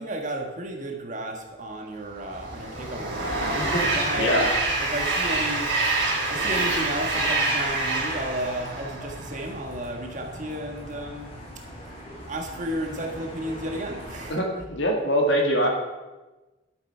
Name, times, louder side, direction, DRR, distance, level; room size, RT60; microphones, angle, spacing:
voice 1, 0.0-3.6 3.8-4.5 4.8-6.0 6.3-11.4 12.3-14.5, right 1 dB, 40° right, 3 dB, 1.7 m, -33 dB
Train, 2.1-9.6, right 2 dB, 75° right, 4.4 m, -26 dB
sound 1, 2.3-14.3, equal, 30° left, 3.1 m, -42 dB
voice 2, 3.6-3.9 4.2-4.5 14.3-15.7, equal, 75° left, 1 dB, 2.4 m, -23 dB
12.0 x 8.2 x 5.8 m, 1.1 s
head